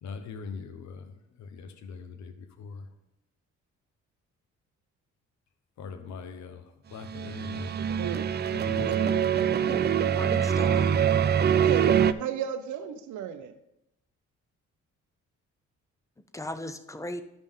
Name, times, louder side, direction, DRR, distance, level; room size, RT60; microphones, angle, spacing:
voice 1, 0.0-2.9 5.8-7.7 8.5-9.6, left 5 dB, 70° left, 7 dB, 0.9 m, -41 dB
sound 1, 7.0-12.1, right 8 dB, 35° right, 0.4 m, -24 dB
voice 2, 7.8-8.2 11.5-13.5, right 9 dB, 70° right, 7 dB, 0.7 m, -33 dB
voice 3, 9.5-9.8 10.1-10.9 16.3-17.2, left 1 dB, 10° left, 9 dB, 0.7 m, -37 dB
12.0 x 5.2 x 3.7 m, 0.85 s
cardioid pair, 90°, 30 cm